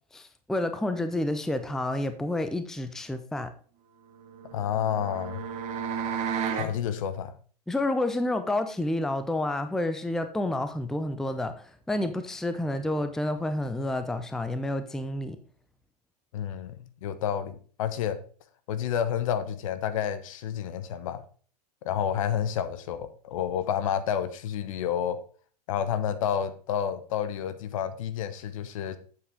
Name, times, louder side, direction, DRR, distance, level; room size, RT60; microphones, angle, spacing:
voice 1, 0.1-3.5 7.7-15.4, left 1 dB, ahead, 0.5 m, -29 dB
sound 1, 4.1-6.7, right 7 dB, 35° right, 1.2 m, -33 dB
voice 2, 4.5-5.4 6.5-7.3 16.3-18.2 18.7-21.2 21.8-25.2 25.7-29.0, left 9 dB, 55° left, 1.0 m, -30 dB
8.2 x 7.3 x 3.6 m
figure-of-eight pair, 100°, 21 cm